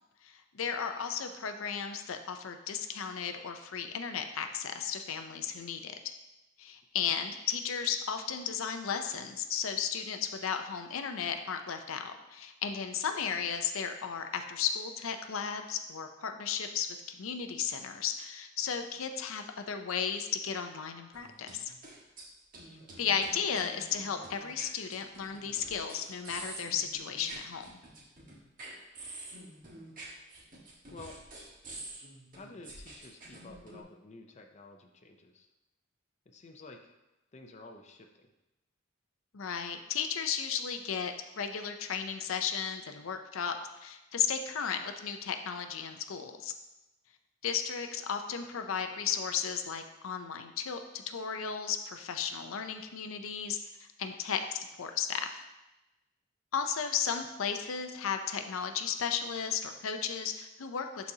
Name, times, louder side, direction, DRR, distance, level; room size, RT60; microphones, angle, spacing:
voice 1, 0.2-6.1 6.6-21.7 23.0-27.8 39.3-46.5 47.4-55.4 56.5-61.1, left 7 dB, 85° left, 6 dB, 0.6 m, -35 dB
sound 1, 21.1-22.2 22.5-33.8, right 2 dB, 45° right, 1.5 m, -48 dB
voice 2, 32.4-35.5 36.3-36.8 37.3-38.3, left 2 dB, 35° left, 3 dB, 0.6 m, -51 dB
11.5 x 4.1 x 2.8 m, 0.99 s
head